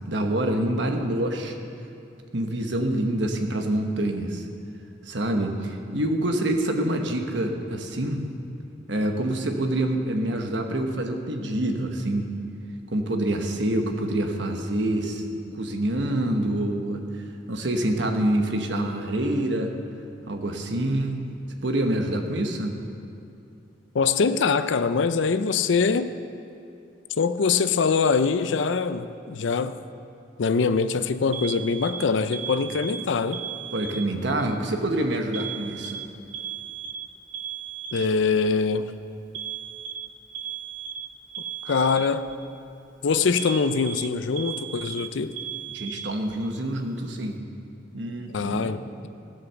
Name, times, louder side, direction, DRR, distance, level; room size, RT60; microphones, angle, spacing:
voice 1, 0.0-1.6 2.3-4.5 5.1-8.2 8.9-12.3 12.9-17.0 17.5-19.7 20.3-21.3 21.6-22.8 33.7-36.0 45.7-47.4 47.9-48.8, right 1 dB, 70° right, 4 dB, 1.2 m, -26 dB
voice 2, 23.9-26.1 27.2-29.8 30.4-33.4 37.9-38.9 41.7-42.3 43.0-45.3 48.3-49.1, left 5 dB, 80° left, 11 dB, 0.5 m, -23 dB
Alarm, 31.3-34.3 35.3-38.3 39.3-42.3 43.4-46.3, right 8 dB, 90° right, 0.9 m, -36 dB
16.0 x 7.4 x 6.8 m, 2.6 s
head